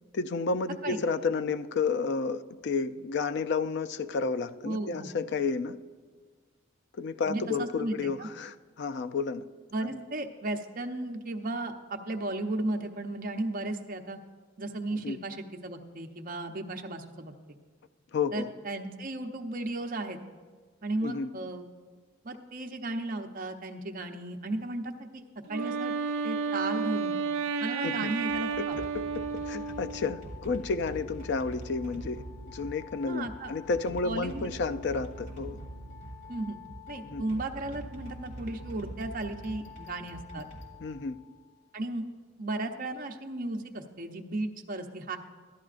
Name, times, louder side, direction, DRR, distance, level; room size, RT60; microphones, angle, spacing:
voice 1, 0.1-5.8 7.0-9.4 9.9-10.0 15.0-15.2 18.1-18.5 21.0-21.3 27.8-28.1 28.6-35.6 37.0-37.2 40.8-41.2, left 4 dB, 55° left, 12 dB, 0.4 m, -31 dB
voice 2, 4.6-5.1 7.3-8.3 9.7-14.2 14.6-17.3 18.3-20.2 20.8-21.6 22.2-25.2 25.5-25.9 26.2-27.1 27.6-28.8 33.1-33.5 34.0-34.5 36.3-36.6 36.9-40.5 41.7-42.1 42.4-45.2, right 2 dB, 40° right, 4 dB, 0.7 m, -35 dB
Wind instrument woodwind instrument, 25.5-30.2, right 5 dB, 80° right, 0.4 m, -32 dB
sound 1, 28.3-41.4, equal, 35° left, 2.1 m, -44 dB
14.0 x 11.0 x 2.5 m, 1.5 s
head